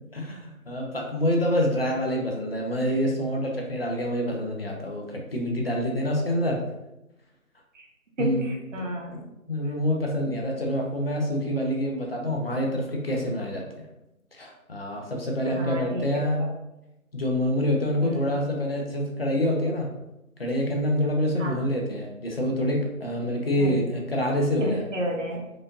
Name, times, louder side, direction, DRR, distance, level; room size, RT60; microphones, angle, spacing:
voice 1, 0.1-6.6 8.2-8.4 9.1-13.6 14.3-16.5 17.1-19.9 20.4-24.8, equal, 45° left, 0 dB, 0.7 m, -26 dB
voice 2, 8.2-9.2 10.3-10.4 15.5-16.5 18.0-18.2 21.4-21.6 23.5-23.8 24.6-25.5, equal, 55° right, 1 dB, 0.9 m, -32 dB
4.9 x 2.6 x 2.5 m, 0.92 s
figure-of-eight pair, 160°, 43 cm